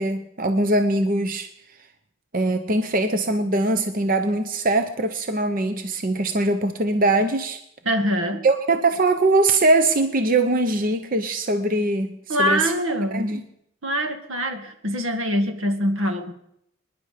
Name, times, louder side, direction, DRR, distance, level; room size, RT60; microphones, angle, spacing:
voice 1, 0.0-1.5 2.3-7.6 8.4-12.7 13.1-13.4, right 2 dB, 45° right, 7 dB, 0.8 m, -22 dB
voice 2, 7.9-8.5 12.3-13.4 13.8-16.3, equal, 80° right, 6 dB, 1.8 m, -24 dB
25.5 x 10.5 x 5.1 m, 0.76 s
head